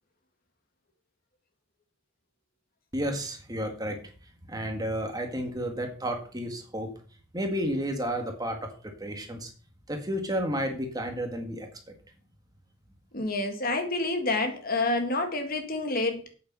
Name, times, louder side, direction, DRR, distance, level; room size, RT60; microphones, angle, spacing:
voice 1, 2.9-4.0 4.5-6.9 7.3-9.5 9.9-11.9, equal, 20° right, 4 dB, 1.7 m, -32 dB
voice 2, 13.1-16.2, left 2 dB, 45° left, 6 dB, 1.8 m, -28 dB
8.6 x 8.2 x 5.5 m, 0.41 s
head